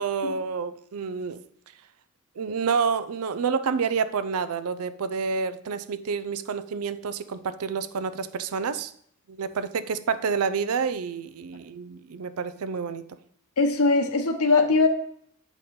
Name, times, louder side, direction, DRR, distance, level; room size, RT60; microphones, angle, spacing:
voice 1, 0.0-1.4 2.4-8.9 9.3-13.0, right 5 dB, 75° right, 14 dB, 0.5 m, -28 dB
voice 2, 13.6-14.9, left 3 dB, 80° left, 5 dB, 1.1 m, -21 dB
8.0 x 5.2 x 4.3 m, 0.66 s
head